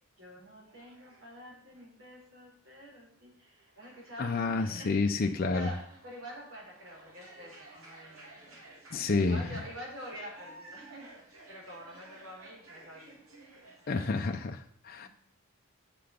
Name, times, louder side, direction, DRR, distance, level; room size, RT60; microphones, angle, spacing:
voice 1, 0.2-5.2 5.5-8.8 9.2-13.2 15.0-15.1, equal, 65° right, -3 dB, 4.2 m, -47 dB
sound 1, 0.6-1.4 1.7-2.1 3.3-14.3, right 2 dB, 80° right, 2.5 m, -54 dB
voice 2, 4.2-5.7 8.9-9.4 13.9-15.1, left 3 dB, 45° left, 4 dB, 0.5 m, -29 dB
7.9 x 6.8 x 5.1 m, 0.65 s
head